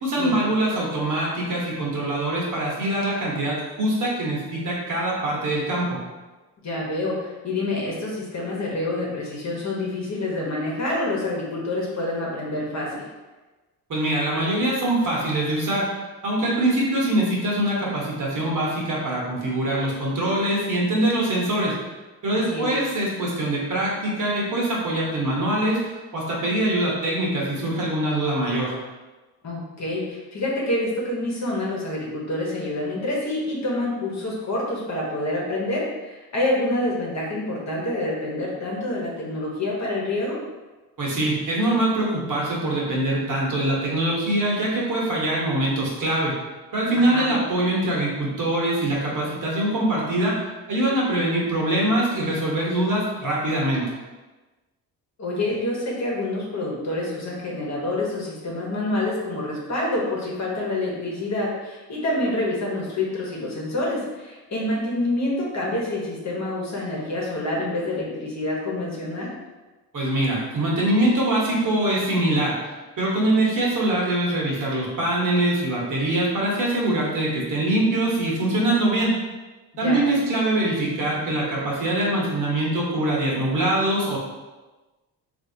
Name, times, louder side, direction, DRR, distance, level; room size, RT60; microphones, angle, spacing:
voice 1, 0.0-6.0 13.9-15.9 16.2-21.7 22.2-25.8 26.1-28.7 41.0-46.3 46.7-50.4 50.7-53.8 69.9-72.5 73.0-79.1 79.8-84.2, right 1 dB, 50° right, -4 dB, 1.3 m, -23 dB
voice 2, 6.6-13.1 22.3-22.7 29.4-40.4 46.9-47.4 55.2-69.3 79.8-80.0, left 1 dB, 45° left, -4 dB, 1.1 m, -27 dB
3.5 x 2.7 x 2.7 m, 1.2 s
cardioid pair, 75°, 39 cm